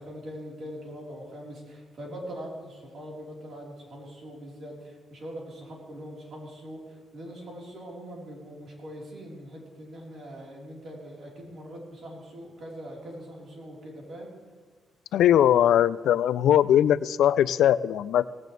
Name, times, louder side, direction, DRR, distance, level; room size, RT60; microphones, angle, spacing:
voice 1, 0.0-14.3, equal, 50° right, -3 dB, 4.0 m, -42 dB
voice 2, 15.1-18.3, left 10 dB, 85° left, 17 dB, 0.4 m, -20 dB
18.0 x 16.0 x 3.3 m, 1.5 s
cardioid pair, 145°, 0 cm